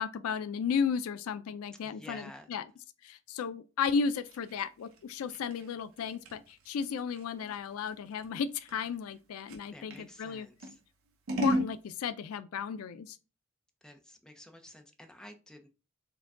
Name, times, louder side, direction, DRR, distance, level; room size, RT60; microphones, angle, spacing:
voice 1, 0.0-2.6 3.0-10.5 11.4-13.2, left 6 dB, 85° left, 0.4 m, -34 dB
voice 2, 1.8-2.5 9.7-10.8 13.8-15.7, left 1 dB, 5° left, 0.5 m, -51 dB
Scissors, 3.9-10.1 10.6-11.7, right 1 dB, 75° right, 0.9 m, -37 dB
4.7 x 2.2 x 3.6 m
head